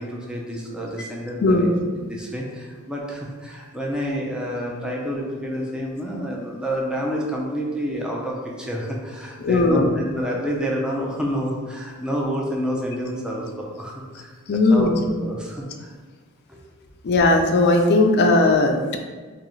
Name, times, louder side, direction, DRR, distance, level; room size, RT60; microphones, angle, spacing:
voice 1, 0.0-1.7 2.0-15.9 16.5-16.6, equal, 5° right, -3 dB, 0.5 m, -29 dB
voice 2, 1.4-1.8 9.4-9.9 14.5-15.1 17.0-19.0, left 2 dB, 50° left, 4 dB, 0.4 m, -18 dB
3.8 x 3.1 x 3.1 m, 1.4 s
head